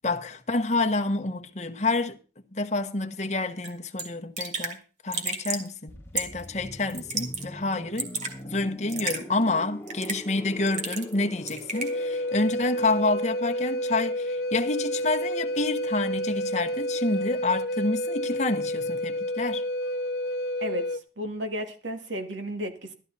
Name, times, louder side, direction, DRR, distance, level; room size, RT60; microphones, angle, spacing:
voice 1, 0.0-2.2 2.5-4.8 5.0-8.1 8.4-19.6, left 2 dB, 40° left, 1.1 m, -28 dB
Raindrop / Drip, 3.6-3.7 4.0-4.1 4.4-4.7 5.1-5.7 6.2-6.4 6.9-7.4 7.7-8.3 8.9-9.2 9.9-10.3 10.7-11.2 11.5-11.9, right 4 dB, 40° right, 2.7 m, -31 dB
sound 1, 5.9-15.5 15.8-16.0, equal, 15° left, 1.3 m, -44 dB
Wind instrument woodwind instrument, 11.7-21.0, equal, 55° left, 0.6 m, -29 dB
voice 2, 20.6-22.9, equal, 90° right, 2.3 m, -33 dB
13.5 x 13.0 x 4.1 m
head